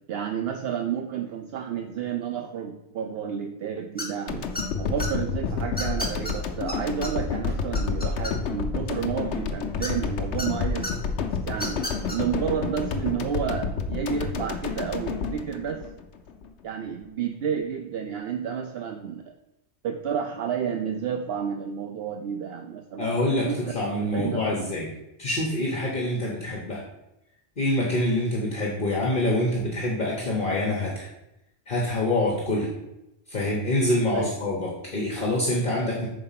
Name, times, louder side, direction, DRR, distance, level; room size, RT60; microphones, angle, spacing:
voice 1, 0.1-4.5 4.8-10.9 11.5-11.9 12.1-15.9 16.6-19.3 19.8-23.7 24.1-24.8 34.1-34.3, right 8 dB, 65° right, 5 dB, 0.7 m, -31 dB
sound 1, 4.0-4.2 4.5-5.1 5.8-6.3 6.7-6.8 7.0-7.1 7.5-8.6 9.8-10.5 10.8-10.9 11.5-12.2, left 1 dB, 10° left, 1.0 m, -32 dB
sound 2, 4.3-16.5, left 5 dB, 80° left, 1.0 m, -30 dB
voice 2, 23.0-24.9 25.2-26.8 27.6-31.1 31.7-32.7 33.3-36.1, left 1 dB, 50° left, -3 dB, 1.2 m, -26 dB
5.8 x 4.3 x 5.6 m, 0.92 s
omnidirectional pair, 1.1 m